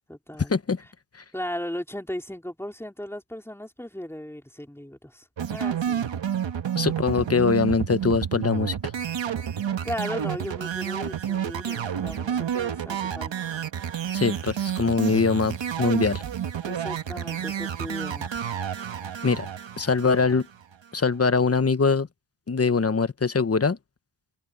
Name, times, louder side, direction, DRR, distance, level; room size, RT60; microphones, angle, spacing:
voice 1, 0.1-0.5 1.3-6.1 9.4-9.5 9.8-13.5 16.6-18.5, left 1 dB, 5° left, 3.9 m, -36 dB
sound 1, 5.4-20.7, right 9 dB, 65° right, 1.5 m, -30 dB
voice 2, 6.8-8.8 14.1-16.2 19.2-19.5 19.8-20.5 20.9-22.1 22.5-23.8, left 4 dB, 30° left, 1.1 m, -22 dB
wide cardioid pair, 85°, 49 cm